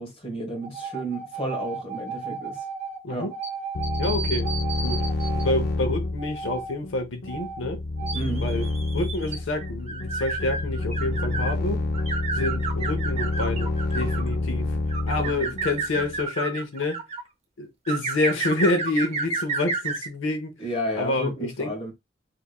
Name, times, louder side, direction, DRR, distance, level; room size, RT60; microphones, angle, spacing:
voice 1, 0.0-2.6 3.1-3.3 8.1-8.6 15.2-15.5 20.6-21.9, equal, 30° left, 1.5 m, -32 dB
sound 1, 0.6-5.5 6.2-6.7 7.3-7.6 8.0-11.5 11.9-14.3 14.9-17.2 17.9-20.1, right 4 dB, 35° right, 0.7 m, -32 dB
sound 2, 3.7-16.2, left 2 dB, 55° left, 0.6 m, -28 dB
voice 2, 4.0-4.5 4.8-5.0 5.3-7.8 8.4-8.7 8.9-11.9 12.3-14.7 15.0-17.0 17.6-20.5 21.0-21.7, left 2 dB, 85° left, 0.7 m, -28 dB
3.5 x 3.3 x 2.3 m
head